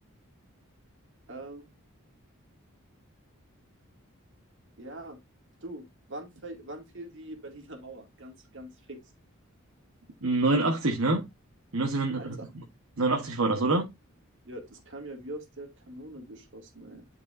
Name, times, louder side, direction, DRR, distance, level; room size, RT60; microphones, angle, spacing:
voice 1, 1.3-1.7 4.8-5.2 5.6-9.0 12.2-12.5 14.4-17.1, right 1 dB, 60° right, 2.3 m, -43 dB
voice 2, 10.2-11.2 11.7-12.4 13.0-13.8, right 2 dB, 80° right, 1.2 m, -25 dB
10.5 x 4.7 x 2.6 m
head